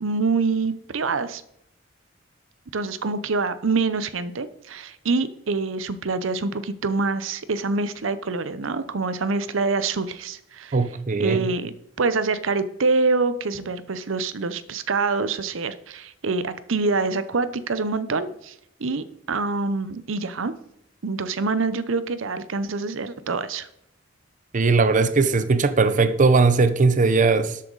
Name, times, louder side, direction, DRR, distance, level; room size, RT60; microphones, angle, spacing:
voice 1, 0.0-1.4 2.7-10.8 11.2-18.5 18.8-20.5 21.0-23.7, right 4 dB, 75° right, 0.7 m, -25 dB
voice 2, 10.7-11.5 24.5-27.6, right 4 dB, 40° right, 0.6 m, -19 dB
12.5 x 8.5 x 4.0 m
head